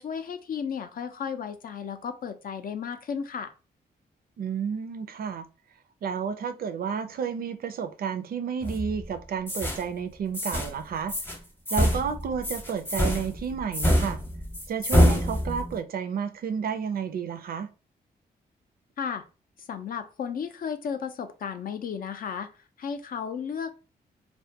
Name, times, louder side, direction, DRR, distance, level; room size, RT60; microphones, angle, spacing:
voice 1, 0.0-3.5 19.0-19.2 19.7-22.5 22.8-23.7, left 7 dB, 60° left, 0.4 m, -34 dB
voice 2, 4.4-5.5 6.0-11.1 11.7-14.2 14.7-17.7, right 7 dB, 60° right, 0.4 m, -31 dB
sound 1, 8.6-9.1 9.5-9.8 10.3-10.8 11.1-11.4 11.7-15.8, equal, 15° left, 0.7 m, -25 dB
2.3 x 2.1 x 2.7 m
cardioid pair, 75°, 17 cm